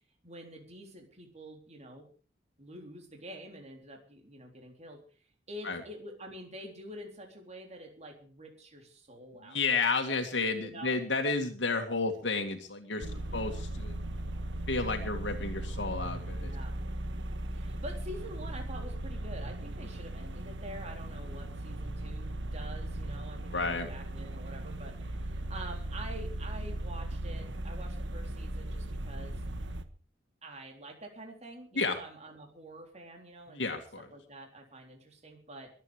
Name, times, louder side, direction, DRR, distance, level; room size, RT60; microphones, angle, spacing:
voice 1, 0.2-2.1 2.6-5.0 5.5-9.9 10.6-11.0 13.0-13.5 16.3-16.8 17.5-29.3 30.4-33.8 34.1-35.7, right 1 dB, 40° right, 2 dB, 3.7 m, -47 dB
voice 2, 9.5-13.1 13.3-14.0 14.7-16.5 23.5-23.9 31.8-32.0 33.5-34.1, left 4 dB, 80° left, 4 dB, 2.1 m, -31 dB
sound 1, 13.0-29.8, right 1 dB, 90° right, 1.4 m, -38 dB
23.0 x 9.1 x 5.0 m, 0.40 s
head